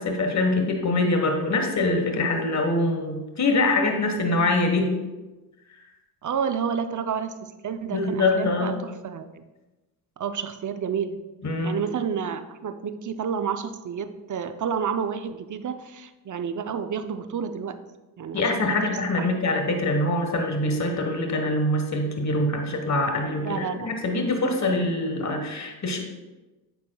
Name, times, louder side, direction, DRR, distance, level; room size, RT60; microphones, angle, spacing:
voice 1, 0.0-4.9 7.9-8.7 11.4-11.8 18.3-26.0, left 2 dB, 35° left, 3 dB, 1.4 m, -24 dB
voice 2, 6.2-9.4 10.2-11.2 11.6-17.8 18.2-19.4 23.4-23.9, right 7 dB, 40° right, 10 dB, 0.6 m, -30 dB
8.5 x 7.0 x 2.3 m, 1.1 s
supercardioid pair, 55°, 49 cm